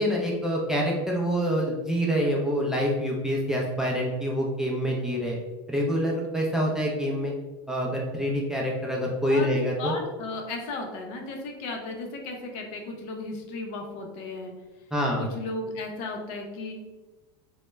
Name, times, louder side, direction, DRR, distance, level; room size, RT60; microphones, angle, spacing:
voice 1, 0.0-5.4 5.7-7.3 7.7-10.0 14.9-15.3, equal, 5° right, -3 dB, 0.4 m, -26 dB
voice 2, 9.3-14.5 15.2-16.7, left 2 dB, 55° left, 2 dB, 0.5 m, -35 dB
2.0 x 2.0 x 3.2 m, 1.2 s
supercardioid pair, 125°, 14 cm